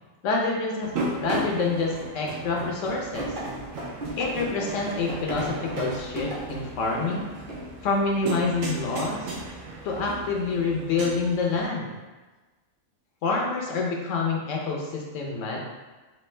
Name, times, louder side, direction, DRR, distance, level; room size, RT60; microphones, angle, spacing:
voice 1, 0.2-0.9 1.2-3.3 4.2-7.3 7.8-9.2 9.8-12.0 13.2-15.6, left 3 dB, 75° left, -1 dB, 1.0 m, -27 dB
sound 1, 0.8-11.7, right 2 dB, 80° right, 1.1 m, -36 dB
sound 2, 3.2-6.7 7.1-7.2 7.5-7.7, right 1 dB, 45° right, 1.0 m, -35 dB
4.3 x 2.4 x 3.2 m, 1.2 s
omnidirectional pair, 1.4 m